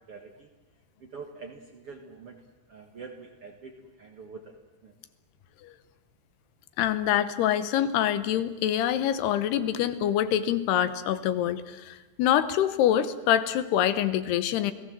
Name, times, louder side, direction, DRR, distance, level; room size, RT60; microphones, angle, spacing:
voice 1, 0.1-0.5 1.0-2.4 2.7-4.6 4.8-4.9, right 4 dB, 50° right, 3 dB, 1.8 m, -45 dB
voice 2, 6.8-14.7, left 10 dB, 80° left, 13 dB, 3.0 m, -25 dB
28.5 x 18.5 x 7.6 m, 1.1 s
omnidirectional pair, 4.8 m